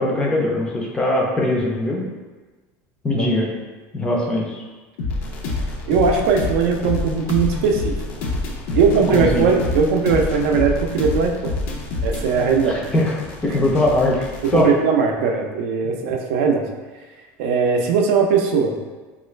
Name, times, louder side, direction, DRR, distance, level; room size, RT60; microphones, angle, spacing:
voice 1, 0.0-2.0 3.0-3.5 3.9-4.6 8.7-8.8 9.1-9.5 12.7-13.2 13.4-14.7, left 1 dB, 15° left, -2 dB, 0.4 m, -21 dB
sound 1, 5.0-14.6, left 2 dB, 75° left, 0.6 m, -27 dB
voice 2, 5.9-7.9 8.7-11.5 12.0-12.8 14.5-16.7 17.4-18.7, right 5 dB, 85° right, 3 dB, 0.4 m, -19 dB
3.1 x 2.3 x 3.1 m, 1.3 s
cardioid pair, 170°, 7 cm